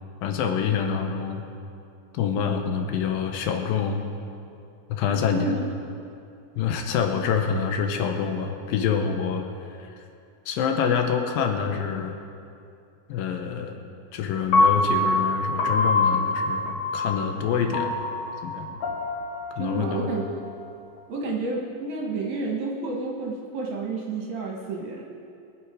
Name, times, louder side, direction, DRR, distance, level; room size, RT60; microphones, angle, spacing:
voice 1, 0.2-1.4 2.1-4.0 4.9-5.5 6.5-9.5 9.8-10.0 10.5-12.2 13.1-13.8 14.1-18.0 18.4-18.8 19.6-20.1, left 7 dB, 80° left, 4 dB, 2.7 m, -26 dB
voice 2, 5.0-5.6 19.6-20.3 21.1-25.0, right 3 dB, 65° right, -1 dB, 2.4 m, -30 dB
Piano, 14.5-20.7, left 2 dB, 60° left, 1.9 m, -25 dB
22.0 x 8.1 x 4.9 m, 2.5 s
omnidirectional pair, 4.1 m